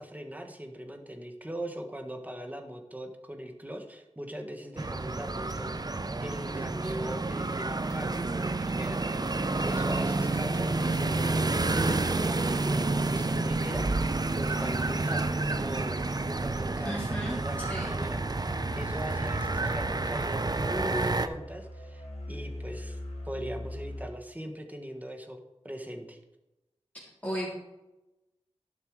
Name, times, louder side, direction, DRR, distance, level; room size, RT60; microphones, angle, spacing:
voice 1, 0.0-5.7 6.2-9.0 9.5-23.0 23.3-26.2, right 1 dB, 15° right, 4 dB, 1.4 m, -40 dB
Street Ambience India, 4.8-21.3, right 2 dB, 35° right, 0.6 m, -29 dB
voice 2, 16.8-17.9 27.2-27.5, equal, 15° left, -5 dB, 3.4 m, -35 dB
Musical instrument, 18.4-24.1, left 1 dB, 65° left, 2.8 m, -41 dB
12.0 x 5.5 x 4.7 m, 0.97 s
wide cardioid pair, 50°, 11 cm